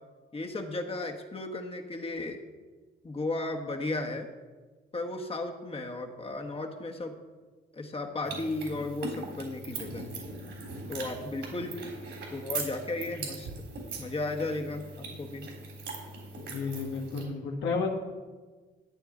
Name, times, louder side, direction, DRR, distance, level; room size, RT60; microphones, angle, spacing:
voice 1, 0.3-2.4 3.0-4.3 4.9-7.1 7.7-10.2 10.9-11.8 12.3-13.5 14.0-15.5, left 2 dB, 30° left, 3 dB, 1.5 m, -35 dB
sound 1, 8.2-17.2, right 3 dB, 75° right, 3.6 m, -40 dB
voice 2, 16.4-17.9, left 4 dB, 80° left, 0 dB, 1.6 m, -32 dB
13.5 x 8.8 x 3.9 m, 1.4 s
cardioid pair, 90°, 20 cm